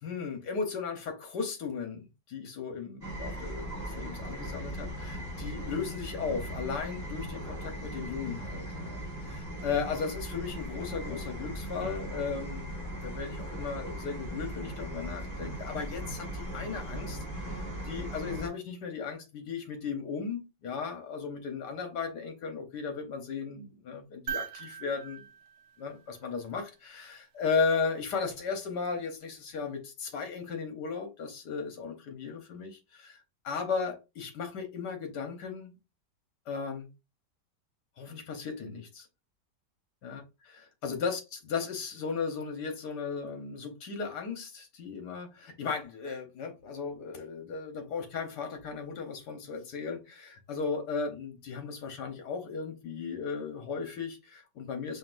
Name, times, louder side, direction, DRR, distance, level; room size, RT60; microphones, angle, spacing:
voice 1, 0.0-12.7 13.0-25.2 25.8-33.2 33.4-35.7 36.5-36.9 38.0-39.1 40.0-40.2 40.8-55.0, left 5 dB, 75° left, 1.6 m, -36 dB
sound 1, 3.0-18.5, right 1 dB, 10° left, 1.1 m, -38 dB
sound 2, 24.3-26.6 28.6-28.7, right 8 dB, 60° right, 0.8 m, -41 dB
5.2 x 3.0 x 2.5 m
omnidirectional pair, 1.8 m